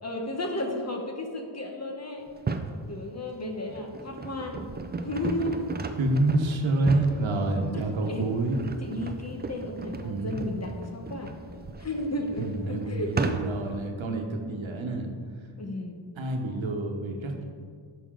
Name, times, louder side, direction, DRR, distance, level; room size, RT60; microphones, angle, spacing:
voice 1, 0.0-2.3 2.9-4.7 5.0-5.7 7.7-8.3 8.8-11.4 11.8-13.6 15.6-16.0, left 1 dB, 30° left, 2 dB, 1.1 m, -33 dB
sound 1, 2.3-2.8 3.4-13.8, right 3 dB, 20° right, 0.4 m, -35 dB
voice 2, 6.0-8.6 10.0-10.4 12.4-15.1 16.2-17.4, right 2 dB, 70° right, 3 dB, 1.2 m, -28 dB
11.0 x 6.7 x 3.8 m, 2.1 s
wide cardioid pair, 145°, 49 cm